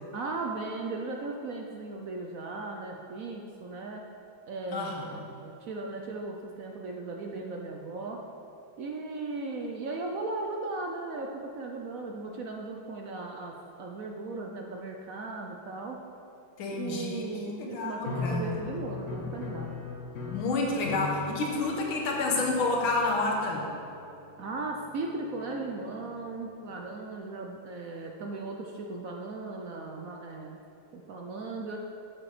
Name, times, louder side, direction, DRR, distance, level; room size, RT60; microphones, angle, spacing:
voice 1, 0.1-4.0 4.5-8.2 8.8-16.0 16.8-19.8 24.4-30.6 30.9-31.8, right 3 dB, 65° right, 1 dB, 0.8 m, -37 dB
voice 2, 4.7-5.3 16.6-17.2 17.6-18.8 20.3-23.7, left 3 dB, 80° left, -1 dB, 2.1 m, -29 dB
sound 1, 18.0-26.4, left 4 dB, 55° left, 1.4 m, -40 dB
7.9 x 7.7 x 5.0 m, 2.7 s
omnidirectional pair, 2.2 m